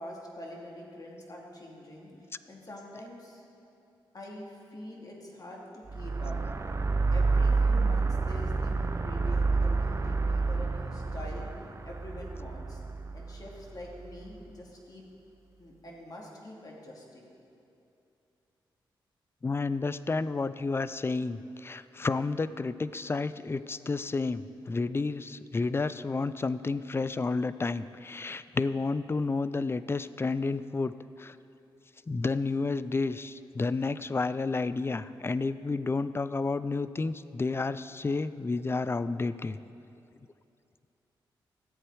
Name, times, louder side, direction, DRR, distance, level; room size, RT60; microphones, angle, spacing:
voice 1, 0.0-2.1 2.5-3.4 4.1-6.8 7.1-11.5 11.8-12.8 13.1-15.0 15.6-17.3, left 1 dB, 45° left, -2 dB, 2.4 m, -45 dB
sound 1, 5.9-14.2, right 3 dB, 30° right, 0.7 m, -29 dB
voice 2, 19.4-30.9 31.2-31.3 32.1-39.6, left 3 dB, 25° left, 15 dB, 0.4 m, -31 dB
14.0 x 8.2 x 4.7 m, 2.7 s
cardioid pair, 55°, 9 cm